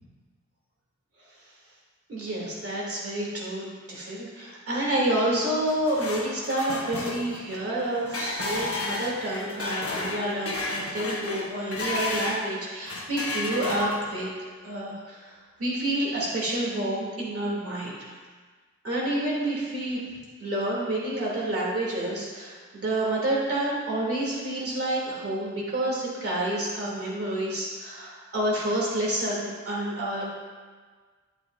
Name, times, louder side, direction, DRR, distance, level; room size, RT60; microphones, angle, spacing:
voice 1, 2.1-14.3 14.6-18.1 18.8-20.0 20.4-30.3, right 1 dB, 50° right, -5 dB, 2.9 m, -29 dB
sound 1, 5.5-12.5 12.9-14.3, left 2 dB, 50° left, 1.1 m, -32 dB
11.0 x 8.9 x 2.6 m, 1.5 s
wide cardioid pair, 140°, 30 cm